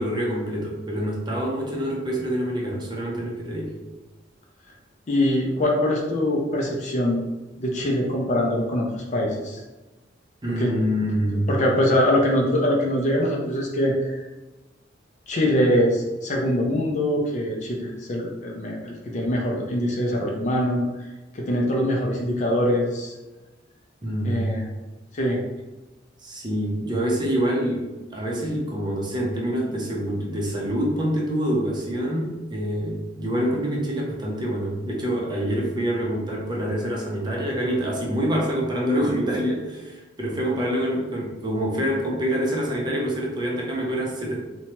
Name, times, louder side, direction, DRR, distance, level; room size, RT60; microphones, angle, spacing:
voice 1, 0.0-3.7 10.4-11.5 24.0-24.5 26.2-44.4, equal, 25° right, -3 dB, 0.5 m, -26 dB
voice 2, 5.1-7.2 7.6-9.6 10.5-10.7 11.5-14.2 15.3-20.8 21.3-23.1 24.2-24.6 25.1-25.4, left 1 dB, 40° left, 0 dB, 0.5 m, -23 dB
2.8 x 2.2 x 2.9 m, 1.1 s
head